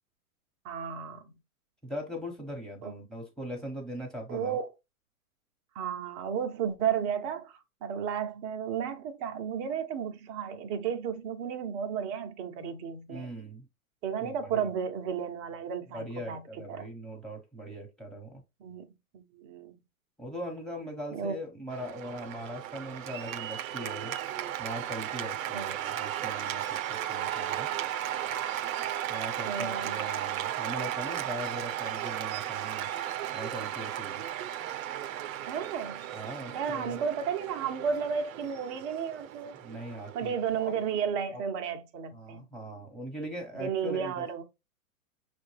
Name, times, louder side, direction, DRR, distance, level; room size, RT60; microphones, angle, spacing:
voice 1, 0.6-1.3 2.8-2.9 4.3-4.7 5.7-13.3 14.0-16.9 18.6-19.7 21.1-21.3 25.5-25.7 29.0-30.0 35.5-36.1 36.5-39.6 40.1-42.5 43.5-44.4, right 7 dB, 25° right, 0.5 m, -33 dB
voice 2, 1.8-4.6 13.1-13.7 14.2-14.7 15.9-18.4 20.2-24.2 24.6-27.7 29.1-32.9 33.3-34.3 36.1-37.0 39.5-40.7 41.3-41.4 42.1-44.2, equal, ahead, 1.0 m, -40 dB
Cheering / Applause, 21.7-41.0, right 11 dB, 65° right, 0.6 m, -35 dB
6.2 x 2.2 x 3.2 m
hypercardioid pair, 135°, 44 cm